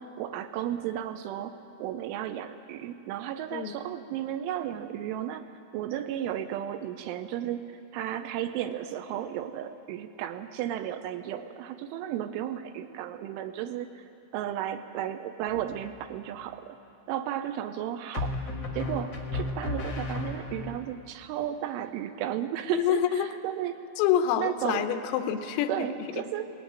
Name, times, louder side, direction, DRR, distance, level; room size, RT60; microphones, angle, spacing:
voice 1, 0.0-5.4 5.7-14.1 14.3-16.8 17.1-23.8 24.4-24.9 25.7-26.5, right 11 dB, 80° right, 9 dB, 3.0 m, -34 dB
sound 1, 15.5-16.0 18.1-20.8, left 3 dB, 65° left, 1.1 m, -34 dB
voice 2, 22.7-23.3 24.0-25.9, left 10 dB, 85° left, 8 dB, 3.5 m, -26 dB
19.5 x 17.0 x 9.0 m, 2.6 s
omnidirectional pair, 5.9 m